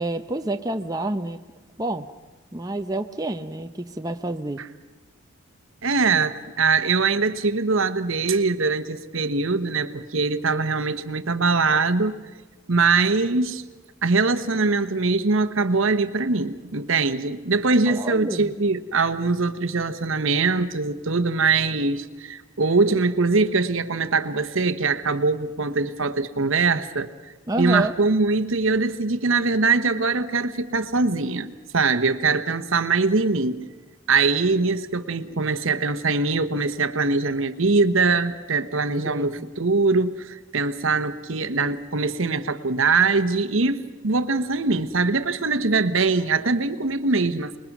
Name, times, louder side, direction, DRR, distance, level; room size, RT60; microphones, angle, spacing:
voice 1, 0.0-1.4 1.8-2.1 2.5-4.6 17.9-18.5 27.5-27.9 39.0-39.5, right 2 dB, 15° right, 6 dB, 0.7 m, -28 dB
voice 2, 5.8-12.2 12.7-13.6 14.0-27.1 27.6-33.7 34.1-47.6, right 4 dB, 70° right, 11 dB, 1.1 m, -22 dB
25.5 x 21.5 x 6.1 m, 1.3 s
head